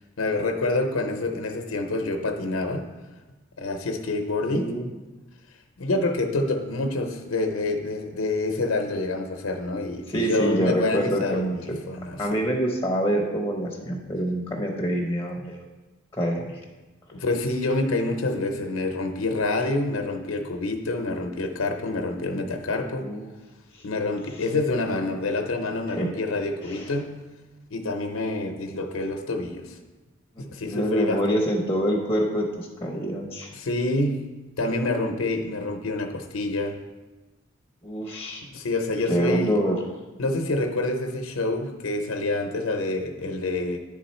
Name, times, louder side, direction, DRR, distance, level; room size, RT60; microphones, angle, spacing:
voice 1, 0.2-2.9 3.6-4.7 5.8-12.2 17.1-23.1 23.8-27.2 27.7-29.8 30.4-31.2 33.5-36.8 38.4-39.6 40.2-43.8, left 2 dB, 85° left, 5 dB, 0.7 m, -27 dB
voice 2, 4.5-4.9 10.1-11.8 12.2-15.6 16.1-16.6 22.9-23.3 23.7-23.8 25.9-26.1 26.6-26.9 30.4-33.5 37.8-38.4 39.1-39.8, equal, 10° left, 0 dB, 0.7 m, -26 dB
9.7 x 3.7 x 4.3 m, 1.2 s
head